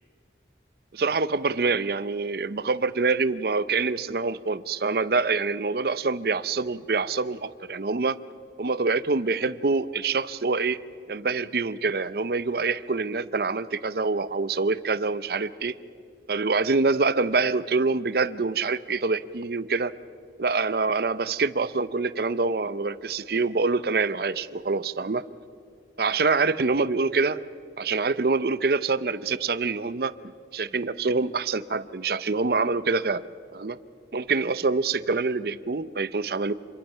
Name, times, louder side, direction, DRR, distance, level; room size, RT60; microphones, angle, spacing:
voice 1, 0.9-8.2 8.6-10.8 11.1-15.7 16.3-19.9 20.4-25.2 26.0-27.4 27.8-30.1 30.5-33.2 33.5-33.8 34.1-36.5, right 4 dB, 60° right, 15 dB, 0.6 m, -25 dB
27.5 x 22.5 x 5.6 m, 2.4 s
head